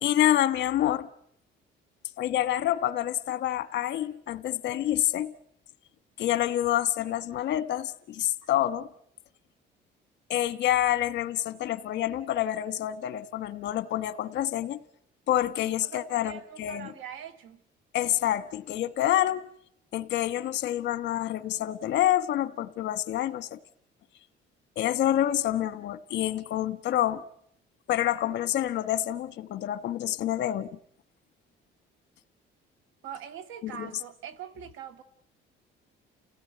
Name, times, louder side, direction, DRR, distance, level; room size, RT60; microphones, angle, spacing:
voice 1, 0.0-1.1 2.2-5.3 6.2-8.9 10.3-14.8 15.3-16.9 17.9-19.4 19.9-23.6 24.8-27.2 27.9-30.7 33.6-33.9, left 12 dB, 60° left, 1.3 m, -27 dB
voice 2, 15.8-17.6 33.0-35.0, right 8 dB, 90° right, 2.0 m, -42 dB
29.5 x 17.0 x 9.6 m
cardioid pair, 165°, 20 cm